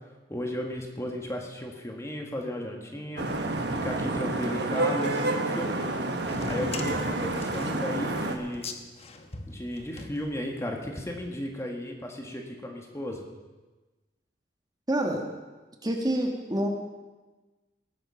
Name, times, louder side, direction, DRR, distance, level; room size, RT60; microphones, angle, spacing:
voice 1, 0.3-3.3 3.7-6.0 6.4-8.7 9.5-13.2, left 1 dB, 15° left, 2 dB, 1.7 m, -34 dB
Vehicle horn car horn honking / Traffic noise roadway noise, 3.2-8.4, right 2 dB, 70° right, 1.4 m, -29 dB
sound 1, 6.2-10.8, left 3 dB, 35° left, 1.0 m, -41 dB
voice 2, 14.9-15.2 15.8-16.7, right 1 dB, 25° right, 2 dB, 1.6 m, -27 dB
19.0 x 9.3 x 5.7 m, 1.2 s
head